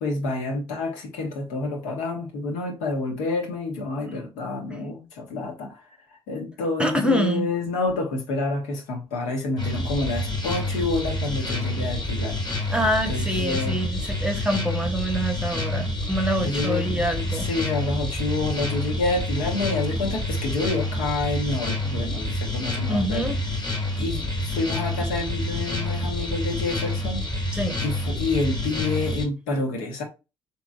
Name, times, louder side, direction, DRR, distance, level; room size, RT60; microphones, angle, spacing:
voice 1, 0.0-5.8 6.3-12.4 12.6-12.7 13.1-13.8 16.4-23.4 24.0-27.2 27.8-30.0, left 3 dB, 70° left, 1.1 m, -28 dB
voice 2, 6.8-7.5 12.7-17.5 22.9-23.4 27.5-27.8, equal, 5° right, 0.8 m, -26 dB
sound 1, 9.6-29.3, left 1 dB, 30° left, 1.4 m, -28 dB
3.8 x 3.0 x 2.3 m
hypercardioid pair, 55°, 14 cm